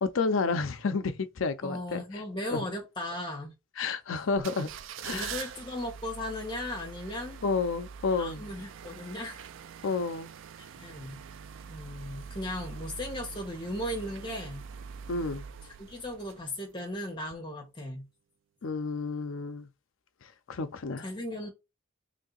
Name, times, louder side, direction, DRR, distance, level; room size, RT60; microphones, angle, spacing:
voice 1, 0.0-2.0 2.5-2.6 3.8-4.7 5.0-5.3 7.4-8.4 9.8-10.3 15.1-15.5 18.6-19.7 20.5-21.0, left 4 dB, 75° left, 0.5 m, -30 dB
voice 2, 1.6-3.5 5.1-7.4 8.1-9.5 10.6-11.2 11.7-14.7 15.8-18.1 21.0-21.5, left 1 dB, 20° left, 1.1 m, -37 dB
sound 1, 4.3-16.8 17.2-17.4, right 7 dB, 65° right, 0.3 m, -44 dB
3.2 x 2.7 x 3.9 m
head